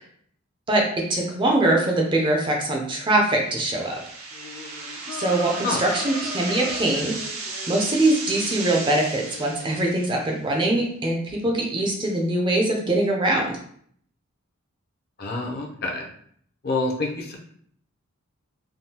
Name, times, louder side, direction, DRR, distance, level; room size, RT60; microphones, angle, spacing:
voice 1, 0.7-4.0 4.9-13.6, right 1 dB, 20° right, 0 dB, 0.4 m, -23 dB
sound 1, 3.4-10.3, right 3 dB, 80° right, 0.7 m, -35 dB
sound 2, 4.3-9.6, left 3 dB, 90° left, 0.8 m, -40 dB
voice 2, 15.2-16.1 16.6-17.4, left 3 dB, 45° left, 0 dB, 0.5 m, -27 dB
3.5 x 2.3 x 2.7 m, 0.64 s
head